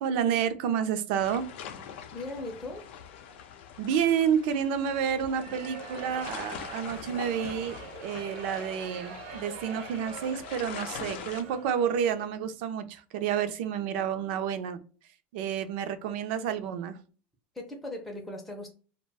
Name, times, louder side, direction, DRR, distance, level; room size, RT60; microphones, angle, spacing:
voice 1, 0.0-1.5 3.8-14.8 15.3-17.0, right 8 dB, 65° right, 10 dB, 0.4 m, -29 dB
sound 1, 1.2-11.4, left 8 dB, 85° left, 0.4 m, -43 dB
voice 2, 2.1-2.9 16.0-16.1 17.5-18.7, left 2 dB, 5° left, 0 dB, 0.4 m, -38 dB
sound 2, 5.1-12.4, right 5 dB, 80° right, 0.9 m, -44 dB
2.4 x 2.1 x 3.3 m, 0.38 s
supercardioid pair, 160°, 6 cm